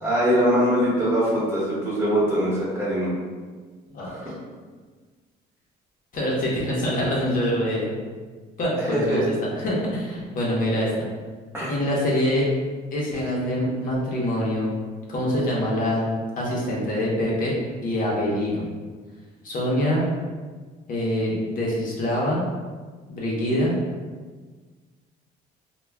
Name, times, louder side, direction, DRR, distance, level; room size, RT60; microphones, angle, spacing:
voice 1, 0.0-3.1 4.0-4.2 8.8-9.2 11.5-11.7, equal, 15° right, -8 dB, 1.0 m, -22 dB
voice 2, 6.1-7.9 8.6-9.2 9.6-11.1 11.7-12.5 12.9-14.7 15.1-17.6 17.8-18.6 19.4-20.1 20.9-22.4 23.1-23.8, equal, 55° left, -4 dB, 0.7 m, -25 dB
2.2 x 2.1 x 3.3 m, 1.4 s
cardioid pair, 110°, 17 cm